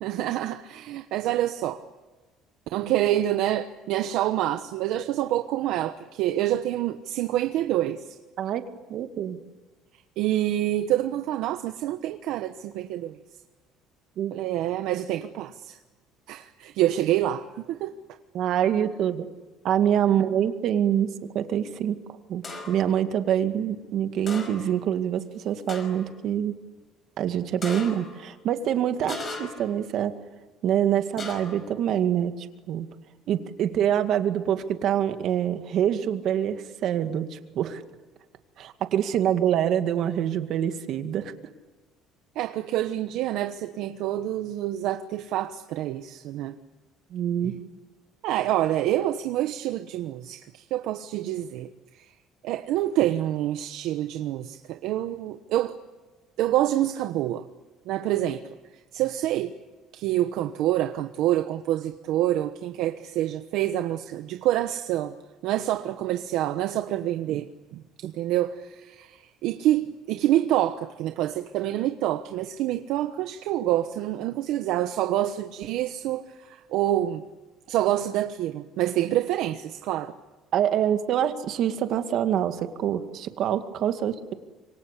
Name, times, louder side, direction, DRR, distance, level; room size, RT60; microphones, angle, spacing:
voice 1, 0.0-1.8 2.7-8.2 10.2-13.2 14.3-15.8 16.3-17.9 42.3-46.6 47.4-47.5 48.2-52.2 52.4-55.7 56.4-57.4 57.9-58.4 58.9-59.5 59.9-65.1 65.4-77.2 77.7-80.1, right 13 dB, 70° right, 1.1 m, -27 dB
voice 2, 8.9-9.4 14.2-14.3 18.3-19.2 19.6-21.1 21.3-22.0 22.3-26.5 27.2-30.1 30.6-32.9 33.3-37.8 38.6-41.3 47.1-47.5 80.5-84.3, right 10 dB, 50° right, 2.1 m, -25 dB
sound 1, 22.4-22.9 24.3-24.8 25.2-25.3 25.7-26.1 27.6-28.2 29.1-29.7 31.2-31.7, left 3 dB, 30° left, 5.2 m, -37 dB
27.0 x 24.0 x 8.4 m
cardioid pair, 150°, 0 cm